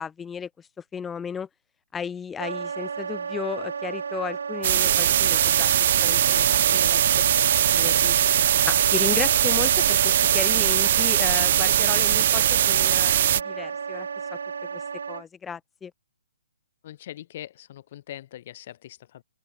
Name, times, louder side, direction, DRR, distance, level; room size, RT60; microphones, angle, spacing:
voice 1, 0.0-1.5 1.9-7.3 7.7-8.2 8.7-14.4 14.7-14.8 15.1-15.9, left 7 dB, 10° left, 0.8 m, -34 dB
Wind instrument woodwind instrument, 2.4-15.2, right 6 dB, 65° right, 1.0 m, -33 dB
sound 1, 4.6-13.4, right 11 dB, 45° right, 0.5 m, -21 dB
Wind instrument woodwind instrument 2, 6.1-10.5, right 2 dB, 85° right, 2.6 m, -34 dB
voice 2, 16.8-19.2, left 12 dB, 40° left, 4.1 m, -41 dB
open air
figure-of-eight pair, 135°, 0 cm